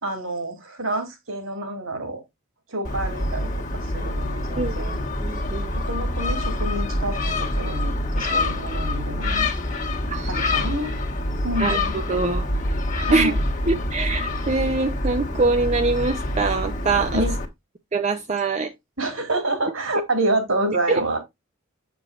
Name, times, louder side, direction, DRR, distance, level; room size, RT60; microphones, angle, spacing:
voice 1, 0.0-2.2 2.7-5.0 5.9-9.5 10.3-10.9 11.4-11.9 13.0-13.4 17.1-17.3 19.0-21.2, right 1 dB, 80° right, 2.9 m, -28 dB
Gull seagull, 2.8-17.4, left 1 dB, 35° left, 1.5 m, -26 dB
voice 2, 4.6-5.7 10.1-10.5 11.6-12.5 13.1-13.4 13.7-17.2 17.9-18.7 20.9-21.0, right 3 dB, 30° right, 0.6 m, -24 dB
7.8 x 6.9 x 2.5 m
head